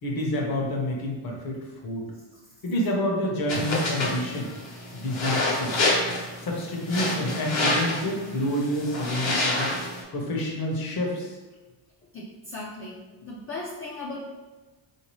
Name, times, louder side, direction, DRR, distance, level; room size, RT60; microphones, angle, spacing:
voice 1, 0.0-1.6 1.8-2.1 2.6-4.5 4.9-5.7 6.4-9.7 10.1-11.4, left 1 dB, 50° left, -1 dB, 0.9 m, -28 dB
sound 1, 3.5-10.0, left 2 dB, 65° left, 1.1 m, -28 dB
voice 2, 12.1-14.2, left 2 dB, 30° left, -5 dB, 0.4 m, -37 dB
3.6 x 2.8 x 3.1 m, 1.2 s
cardioid pair, 160°, 47 cm